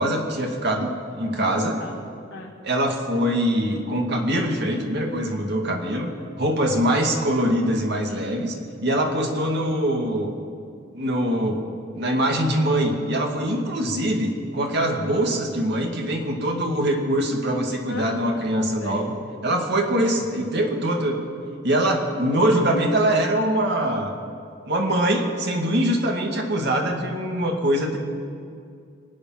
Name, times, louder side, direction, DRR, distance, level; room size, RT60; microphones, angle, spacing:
voice 1, 0.0-1.8 2.6-6.1 6.4-8.5 8.8-10.3 10.9-11.6 11.9-19.1 19.4-21.2 21.6-24.1 24.7-28.0, right 1 dB, 60° right, 2 dB, 2.2 m, -23 dB
voice 2, 1.4-2.5 17.9-18.4 18.8-19.1 20.0-20.2, left 2 dB, 75° left, 0 dB, 1.4 m, -36 dB
25.0 x 8.7 x 5.9 m, 2.3 s
head